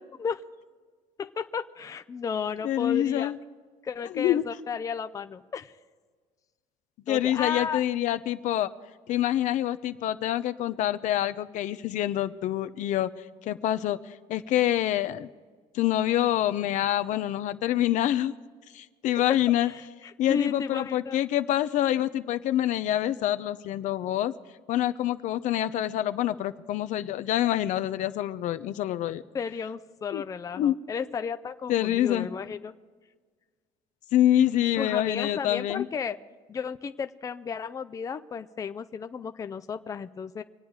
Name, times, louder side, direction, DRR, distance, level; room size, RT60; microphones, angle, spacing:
voice 1, 1.2-3.3 3.8-5.7 7.1-7.8 19.2-21.2 29.3-32.7 34.7-36.2 36.5-40.4, left 6 dB, 25° left, 9 dB, 0.6 m, -33 dB
voice 2, 2.6-3.4 4.1-4.4 7.1-8.7 9.1-13.1 13.5-14.0 14.3-15.3 15.7-18.3 18.7-19.7 20.2-24.3 24.7-29.2 30.1-30.2 30.6-30.7 31.7-32.3 34.1-35.8, left 12 dB, 60° left, 11 dB, 0.7 m, -26 dB
25.5 x 9.1 x 4.8 m, 1.5 s
cardioid pair, 125°, 14 cm